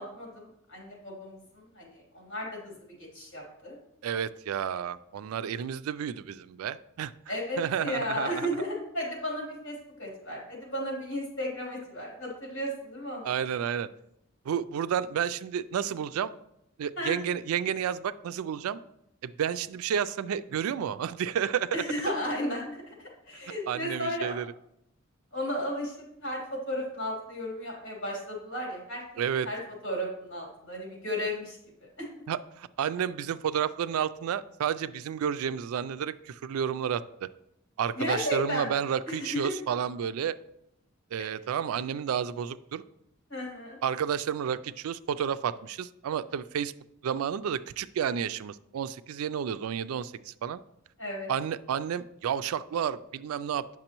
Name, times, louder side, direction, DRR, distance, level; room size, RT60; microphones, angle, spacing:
voice 1, 0.0-2.7 3.1-3.8 7.3-13.3 17.0-17.2 21.7-24.3 25.3-29.0 29.4-32.1 37.9-38.7 39.1-39.5 43.3-43.8 51.0-51.3, equal, 60° left, -3 dB, 3.0 m, -34 dB
voice 2, 4.0-8.5 13.2-13.9 14.5-16.3 16.8-18.8 19.2-21.8 23.7-24.5 29.2-29.5 32.3-37.3 37.8-40.4 41.1-42.8 43.8-46.7 47.0-50.6 51.3-53.6, right 8 dB, 85° right, 14 dB, 0.3 m, -31 dB
8.9 x 5.9 x 3.0 m, 0.80 s
head